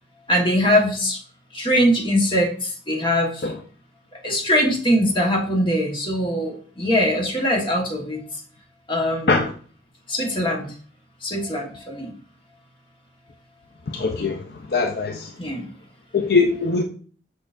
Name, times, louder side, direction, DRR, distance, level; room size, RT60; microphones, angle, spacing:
voice 1, 0.3-1.2 1.5-3.5 4.2-8.2 8.9-9.4 10.1-10.7 11.2-12.1 15.4-15.6, equal, 30° left, 1.3 m, -22 dB
voice 2, 13.9-14.4 14.7-15.3 16.1-16.8, left 4 dB, 60° left, 0.5 m, -21 dB
6.3 x 5.8 x 2.6 m
head